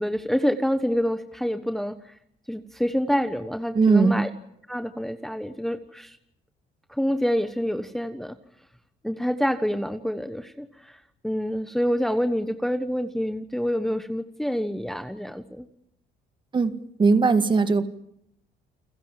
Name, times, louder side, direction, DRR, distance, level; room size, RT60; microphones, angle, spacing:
voice 1, 0.0-2.0 2.5-4.3 4.7-6.2 6.9-8.4 9.0-10.9 11.2-15.7, equal, ahead, 9 dB, 1.2 m, -27 dB
voice 2, 3.7-4.2 16.5-16.7 17.0-17.9, right 4 dB, 30° right, 10 dB, 1.9 m, -19 dB
30.0 x 22.0 x 7.6 m, 0.74 s
cardioid pair, 110°, 17 cm